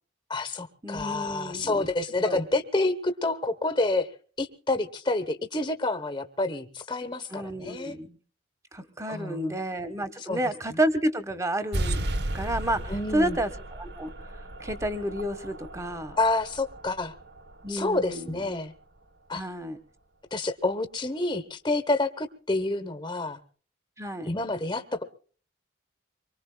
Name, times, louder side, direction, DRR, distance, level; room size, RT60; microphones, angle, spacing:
voice 1, 0.3-4.1 4.4-7.9 9.1-9.6 10.2-10.4 10.7-10.8 12.9-13.4 16.2-17.1 17.7-18.7 19.3-19.5 20.3-23.4 24.2-25.0, left 2 dB, 25° left, 8 dB, 1.1 m, -28 dB
voice 2, 0.8-1.9 2.2-2.4 7.3-8.2 8.7-12.0 12.3-14.1 14.6-16.2 17.6-18.5 19.3-19.8 24.0-24.3, right 1 dB, 15° right, 10 dB, 1.4 m, -30 dB
sound 1, 11.7-18.8, right 1 dB, 60° right, 1.1 m, -35 dB
25.0 x 23.0 x 2.3 m, 0.43 s
head